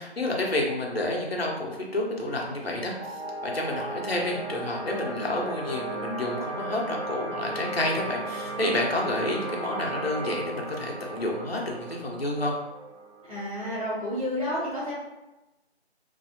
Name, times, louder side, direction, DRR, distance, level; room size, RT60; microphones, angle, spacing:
voice 1, 0.0-12.5, left 1 dB, 65° left, -1 dB, 0.9 m, -29 dB
sound 1, 2.9-14.0, right 2 dB, 85° right, 1.2 m, -36 dB
voice 2, 13.3-14.9, equal, 30° right, -8 dB, 1.4 m, -30 dB
3.0 x 2.7 x 2.8 m, 0.99 s
figure-of-eight pair, 165°, 33 cm